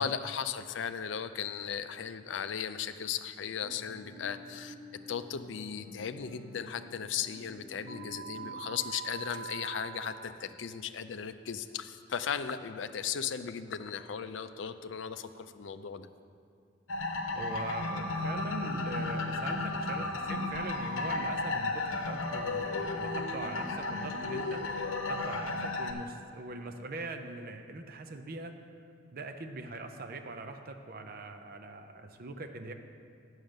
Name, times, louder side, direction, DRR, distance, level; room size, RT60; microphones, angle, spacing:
voice 1, 0.0-4.7 5.1-16.1, left 7 dB, 65° left, 10 dB, 0.4 m, -36 dB
Guitar, 3.4-8.5, left 1 dB, 80° right, 1.1 m, -50 dB
sound 1, 7.9-9.9, right 8 dB, 10° right, 1.6 m, -42 dB
sound 2, 16.9-25.9, left 2 dB, 90° left, 0.8 m, -34 dB
voice 2, 17.3-28.5 29.1-32.7, right 2 dB, 50° right, 6 dB, 0.6 m, -42 dB
8.8 x 6.4 x 6.5 m, 2.4 s
head